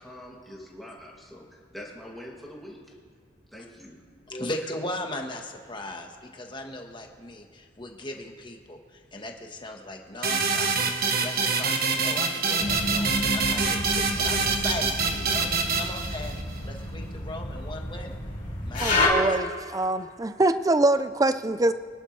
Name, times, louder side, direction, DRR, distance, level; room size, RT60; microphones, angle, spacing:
voice 1, 0.0-2.8 3.5-4.0, equal, ahead, -4 dB, 2.4 m, -44 dB
voice 2, 4.3-10.9 11.2-18.1 18.6-19.3, left 1 dB, 25° left, 3 dB, 1.3 m, -38 dB
sound 1, 10.2-16.6, right 4 dB, 55° right, 1.3 m, -26 dB
sound 2, 12.6-19.1, left 2 dB, 45° left, 3.7 m, -30 dB
voice 3, 18.8-21.7, right 2 dB, 20° right, 11 dB, 0.5 m, -24 dB
24.5 x 11.0 x 3.3 m, 2.1 s
head